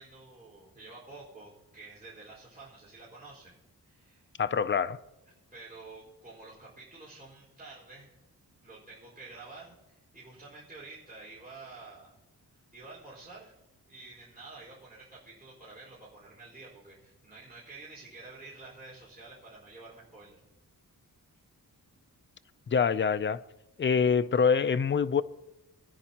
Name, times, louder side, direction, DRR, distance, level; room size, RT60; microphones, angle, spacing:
voice 1, 0.0-3.6 3.8-4.2 5.5-8.1 8.6-12.1 12.7-13.5 13.9-20.4, right 3 dB, 25° right, 4.5 m, -49 dB
voice 2, 4.4-5.0 22.7-23.4 23.8-25.2, left 6 dB, 35° left, 0.4 m, -25 dB
24.5 x 10.0 x 2.9 m
wide cardioid pair, 125°, 36 cm